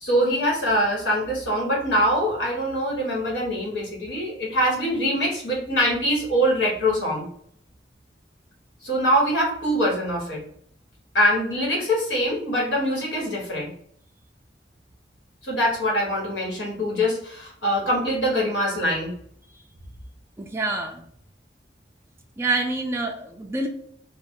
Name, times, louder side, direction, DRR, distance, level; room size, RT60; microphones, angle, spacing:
voice 1, 0.0-7.3 8.8-10.4 11.1-13.7 15.4-19.1, equal, 75° left, -3 dB, 1.4 m, -23 dB
voice 2, 20.4-21.0 22.4-23.7, right 3 dB, 15° right, 2 dB, 0.3 m, -27 dB
2.5 x 2.2 x 3.6 m, 0.66 s
head